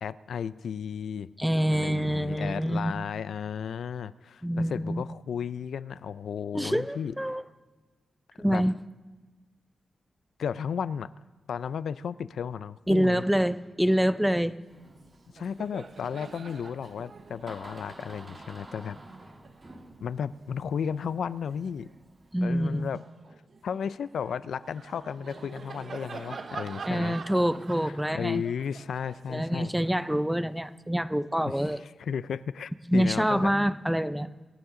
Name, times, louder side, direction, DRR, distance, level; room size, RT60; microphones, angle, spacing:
voice 1, 0.0-1.3 1.7-7.1 8.4-8.7 10.4-11.1 11.5-13.2 15.3-19.0 20.0-21.9 22.4-23.0 23.6-27.2 27.8-29.7 31.4-31.6 32.0-33.5, left 7 dB, 85° left, 17 dB, 0.4 m, -34 dB
voice 2, 1.4-2.9 4.4-5.0 6.5-7.4 8.4-8.7 12.9-14.6 22.3-22.9 26.9-28.4 29.3-31.8 32.9-34.3, equal, 5° right, 14 dB, 0.5 m, -26 dB
Door, 14.7-22.3, right 1 dB, 25° right, 2.0 m, -51 dB
Laughter, 14.8-15.0 15.3-22.0 22.5-30.7, right 4 dB, 60° right, 0.9 m, -46 dB
26.0 x 9.7 x 3.8 m, 1.3 s
cardioid pair, 85°, 0 cm